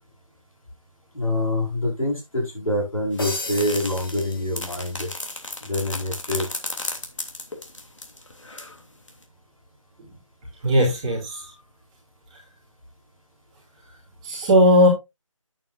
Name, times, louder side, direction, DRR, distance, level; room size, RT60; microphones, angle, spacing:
voice 1, 1.1-5.1 5.6-6.5, left 1 dB, 85° left, 0 dB, 5.1 m, -25 dB
sound 1, 3.1-8.8 9.1-9.2, left 2 dB, 65° left, 2.9 m, -34 dB
sound 2, 3.2-5.3, left 2 dB, 40° left, 2.5 m, -35 dB
voice 2, 10.6-11.5 14.2-14.9, equal, 10° right, -7 dB, 2.5 m, -17 dB
10.5 x 8.7 x 2.5 m, 0.22 s
figure-of-eight pair, 165°, 17 cm